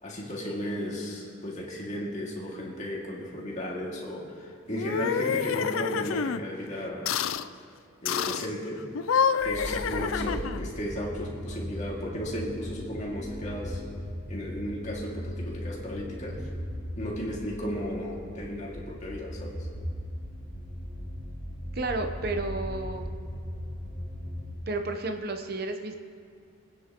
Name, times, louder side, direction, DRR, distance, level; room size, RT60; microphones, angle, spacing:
voice 1, 0.0-7.2 8.0-8.8 9.4-13.8 14.3-16.5 17.0-19.7, equal, 35° left, -3 dB, 2.2 m, -34 dB
sound 1, 4.7-6.4 7.1-7.5 8.1-8.5 8.9-10.7, left 7 dB, 75° left, 0.4 m, -28 dB
sound 2, 9.4-24.5, equal, 20° right, 2.8 m, -38 dB
voice 2, 21.7-23.1 24.7-26.0, right 2 dB, 45° right, 5 dB, 0.9 m, -32 dB
24.5 x 9.8 x 3.0 m, 2.4 s
head